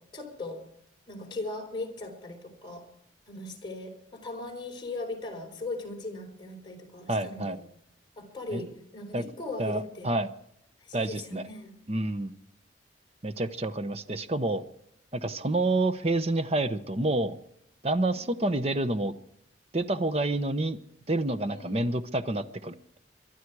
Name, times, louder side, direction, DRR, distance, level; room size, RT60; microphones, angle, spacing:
voice 1, 0.1-0.6 1.1-2.8 3.3-7.6 8.2-10.1 10.8-11.7 18.1-18.5 21.5-21.9, left 2 dB, 25° left, 1 dB, 4.3 m, -39 dB
voice 2, 7.1-7.6 8.5-8.6 9.1-9.2 9.6-10.3 10.9-11.4 11.9-12.3 13.2-14.6 15.1-17.4 17.8-19.1 19.7-20.8 21.1-23.0, right 2 dB, 35° right, 11 dB, 0.9 m, -28 dB
23.0 x 12.0 x 4.8 m, 0.77 s
head